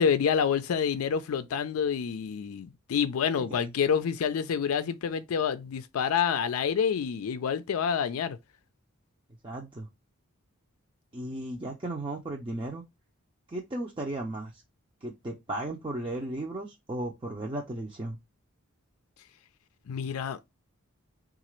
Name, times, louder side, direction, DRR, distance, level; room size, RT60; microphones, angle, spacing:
voice 1, 0.0-8.4 19.9-20.4, left 7 dB, 90° left, 0.4 m, -28 dB
voice 2, 9.4-9.9 11.1-12.8 13.5-14.6 15.0-18.2, right 1 dB, 25° right, 0.5 m, -35 dB
3.9 x 2.4 x 3.0 m
head